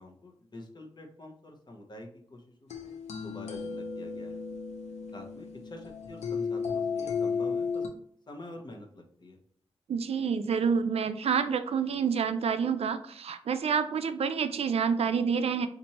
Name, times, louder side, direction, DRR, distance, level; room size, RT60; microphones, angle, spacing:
voice 1, 0.0-4.4 5.1-7.9 8.3-9.4, left 1 dB, 40° left, 2 dB, 0.9 m, -47 dB
sound 1, 2.7-7.9, left 5 dB, 80° left, 0.6 m, -34 dB
voice 2, 9.9-15.7, right 6 dB, 65° right, 9 dB, 0.4 m, -28 dB
4.3 x 2.5 x 2.9 m, 0.64 s
cardioid pair, 75°, 11 cm